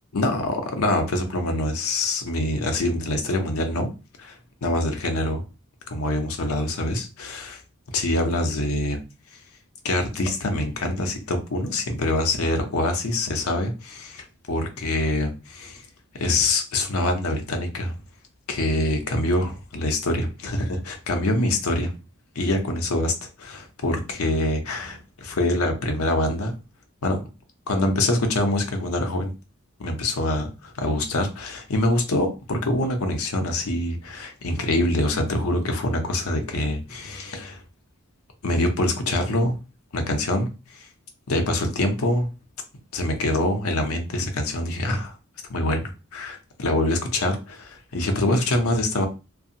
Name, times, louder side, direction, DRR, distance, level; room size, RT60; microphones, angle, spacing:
voice 1, 0.1-3.9 4.2-5.4 5.9-7.6 7.9-9.0 9.8-15.8 16.1-17.9 18.5-21.9 22.4-26.5 27.0-27.2 27.7-29.3 29.8-37.6 38.4-39.6 39.9-40.9 41.3-42.3 42.9-45.2 45.5-49.1, left 1 dB, 85° left, 4 dB, 0.6 m, -25 dB
2.5 x 2.3 x 2.7 m, 0.29 s
head